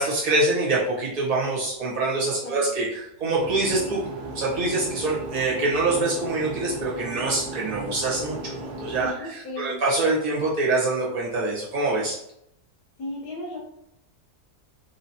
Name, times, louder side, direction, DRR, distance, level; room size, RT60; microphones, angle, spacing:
voice 1, 0.0-4.0 4.3-12.2, right 2 dB, 65° right, -5 dB, 1.6 m, -25 dB
sound 1, 3.4-9.1, right 1 dB, 85° right, 1.2 m, -36 dB
voice 2, 9.0-9.8 13.0-13.6, left 1 dB, 85° left, -6 dB, 1.5 m, -35 dB
3.7 x 2.9 x 2.7 m, 0.76 s
omnidirectional pair, 1.6 m